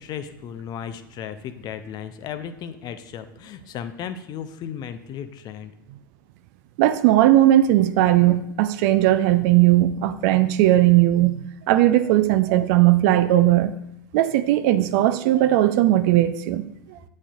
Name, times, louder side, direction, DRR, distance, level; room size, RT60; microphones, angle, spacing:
voice 1, 0.0-5.7, left 8 dB, 35° left, 11 dB, 0.5 m, -35 dB
voice 2, 6.8-13.7 14.1-16.6 16.9-17.0, right 14 dB, 50° right, 11 dB, 0.4 m, -18 dB
9.8 x 4.2 x 2.4 m, 0.84 s
figure-of-eight pair, 85°, 12 cm